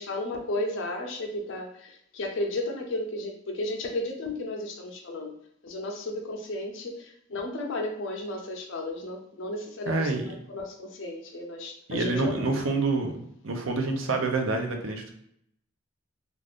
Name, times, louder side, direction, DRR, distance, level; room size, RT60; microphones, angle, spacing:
voice 1, 0.0-5.3 5.6-12.3, left 1 dB, 65° left, 2 dB, 0.6 m, -34 dB
voice 2, 9.9-10.2 11.9-13.1 13.4-15.1, right 3 dB, 75° right, 4 dB, 0.6 m, -27 dB
2.5 x 2.4 x 3.4 m, 0.72 s
head